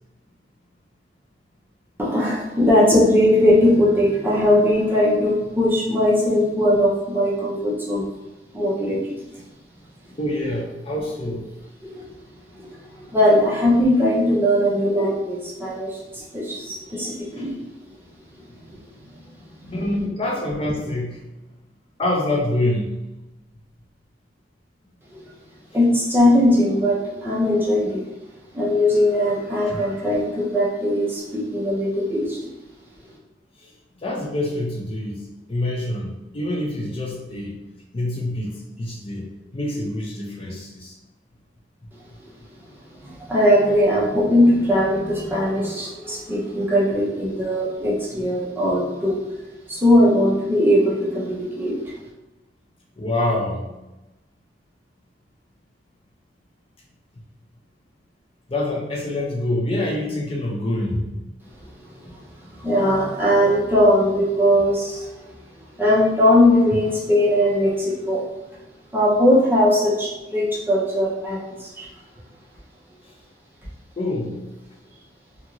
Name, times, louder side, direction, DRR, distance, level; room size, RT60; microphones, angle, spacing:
voice 1, 2.0-8.1 8.5-9.2 11.8-12.1 12.5-17.6 18.3-18.8 19.2-19.8 25.1-25.3 25.7-28.0 28.5-32.5 42.2-42.3 43.0-51.9 61.8-65.3 65.8-68.2 68.9-71.9, left 1 dB, 10° right, -6 dB, 0.6 m, -20 dB
voice 2, 10.2-11.5 17.4-17.5 19.7-21.3 22.0-23.0 29.7-29.8 33.6-33.7 34.0-35.2 35.5-37.6 37.9-40.9 53.0-53.7 58.5-61.2 74.0-74.4, left 1 dB, 35° left, -3 dB, 0.5 m, -26 dB
2.5 x 2.4 x 2.9 m, 1.0 s
head